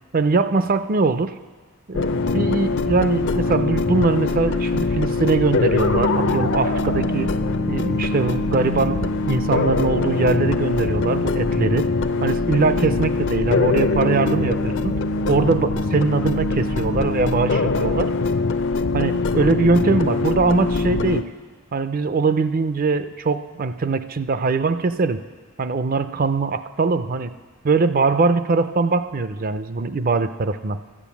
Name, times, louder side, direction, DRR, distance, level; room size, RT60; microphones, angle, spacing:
voice 1, 0.1-1.3 1.9-7.3 7.7-11.9 12.2-15.0 15.3-18.1 18.9-21.3 21.7-25.2 25.6-27.4 27.6-30.8, right 4 dB, 40° right, 12 dB, 0.4 m, -22 dB
sound 1, 1.9-21.2, left 3 dB, 55° left, 0.5 m, -22 dB
12.5 x 8.9 x 7.1 m, 1.4 s
head